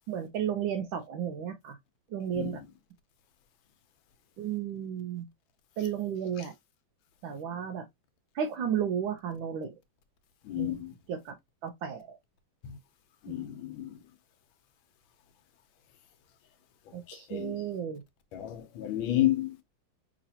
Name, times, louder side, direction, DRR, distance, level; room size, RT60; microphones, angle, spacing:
voice 1, 0.1-1.8 2.1-2.6 4.4-5.3 5.8-6.5 7.2-7.8 8.3-9.7 10.6-10.7 11.1-11.3 11.6-12.2 13.3-13.4 16.9-18.0, right 8 dB, 80° right, 1.5 m, -33 dB
voice 2, 10.5-10.9 13.2-14.0 17.1-17.5 18.3-19.6, left 13 dB, 80° left, 1.5 m, -31 dB
5.5 x 3.1 x 2.7 m
omnidirectional pair, 2.1 m